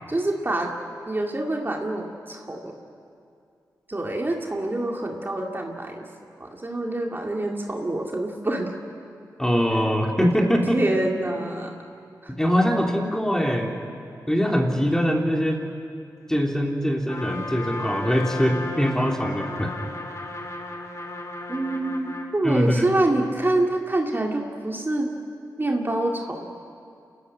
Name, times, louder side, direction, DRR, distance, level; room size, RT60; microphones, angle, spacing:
voice 1, 0.1-0.7 1.1-2.8 3.9-6.1 6.4-8.7 9.7-9.8 10.2-11.7 12.2-12.3 21.5-25.1 25.6-26.5, right 1 dB, 30° right, 1 dB, 2.3 m, -26 dB
voice 2, 9.4-10.8 12.4-13.7 14.3-15.6 16.3-19.7 22.4-22.8, equal, 5° left, 1 dB, 3.1 m, -22 dB
Trumpet, 17.1-22.3, left 2 dB, 45° left, 3.3 m, -35 dB
27.0 x 14.5 x 9.9 m, 2.4 s
cardioid pair, 60°, 7 cm